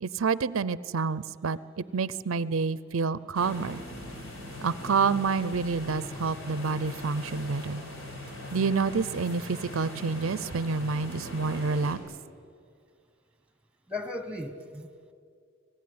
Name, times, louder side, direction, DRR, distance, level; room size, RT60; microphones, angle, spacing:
voice 1, 0.0-3.8 4.6-7.8 8.5-12.0, right 5 dB, 80° right, 18 dB, 0.6 m, -28 dB
sound 1, 3.3-12.0, left 1 dB, 75° left, 5.2 m, -40 dB
voice 2, 13.9-15.1, left 2 dB, 5° right, 9 dB, 1.4 m, -37 dB
26.0 x 18.0 x 9.5 m, 2.3 s
head